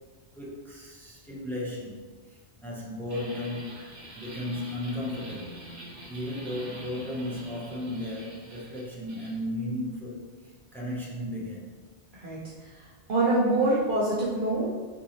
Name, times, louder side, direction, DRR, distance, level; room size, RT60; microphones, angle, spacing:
voice 1, 0.4-3.8 4.2-5.6 6.1-10.3 10.7-11.7, left 1 dB, 5° left, -5 dB, 0.3 m, -35 dB
sound 1, 3.1-9.3, right 1 dB, 75° right, 1.1 m, -45 dB
voice 2, 13.1-14.7, right 2 dB, 50° right, -8 dB, 0.8 m, -24 dB
3.8 x 2.6 x 2.9 m, 1.4 s
omnidirectional pair, 1.2 m